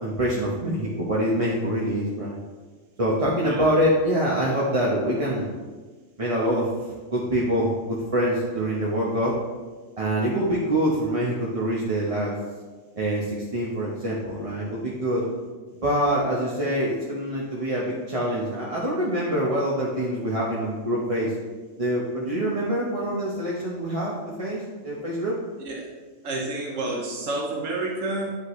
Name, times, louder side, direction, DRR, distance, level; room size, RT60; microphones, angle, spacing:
voice 1, 0.0-2.4 3.0-5.5 6.2-6.7 7.1-9.4 10.0-12.4 13.0-15.2 15.8-21.3 21.8-24.1 24.4-24.6 24.8-25.3, equal, 30° right, -5 dB, 1.0 m, -25 dB
voice 2, 3.4-3.7 25.6-25.9 26.2-28.3, right 2 dB, 80° right, -1 dB, 1.4 m, -29 dB
9.7 x 5.7 x 3.1 m, 1.4 s
omnidirectional pair, 1.3 m